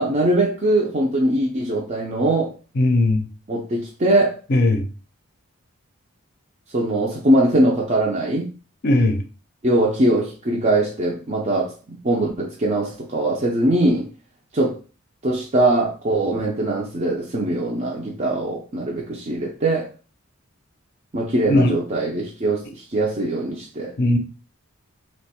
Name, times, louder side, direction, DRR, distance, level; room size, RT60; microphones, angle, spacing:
voice 1, 0.0-2.5 3.5-4.4 6.7-8.5 9.6-14.1 14.5-14.8 15.2-19.9 21.1-23.9, right 1 dB, 35° right, 0.5 m, -21 dB
voice 2, 2.8-3.3 4.5-4.9 8.8-9.2 21.5-21.8 24.0-24.2, left 1 dB, 45° left, 0.5 m, -18 dB
3.0 x 2.2 x 4.2 m
head